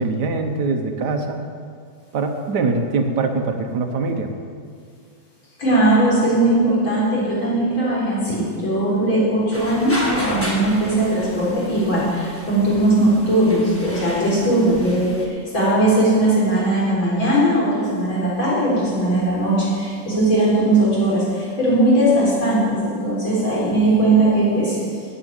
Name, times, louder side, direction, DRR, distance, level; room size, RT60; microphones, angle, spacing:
voice 1, 0.0-1.5 2.1-4.3, right 3 dB, 65° right, 5 dB, 1.4 m, -23 dB
voice 2, 5.6-25.0, right 1 dB, 85° left, -7 dB, 4.9 m, -19 dB
sound 1, 9.5-15.3, equal, 10° left, 1.2 m, -32 dB
9.8 x 7.6 x 9.0 m, 2.2 s
omnidirectional pair, 2.1 m